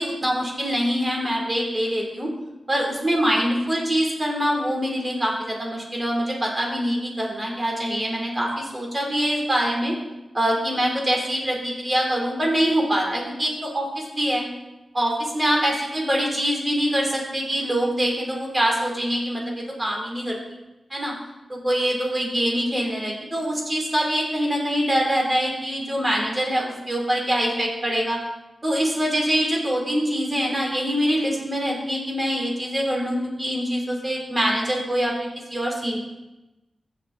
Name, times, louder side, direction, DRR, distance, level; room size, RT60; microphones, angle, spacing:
voice 1, 0.0-2.3 2.7-9.9 10.3-14.5 14.9-20.4 20.9-21.1 21.5-28.2 28.6-36.0, equal, 25° right, -1 dB, 3.1 m, -24 dB
15.5 x 6.0 x 3.9 m, 0.99 s
wide cardioid pair, 90°, 0 cm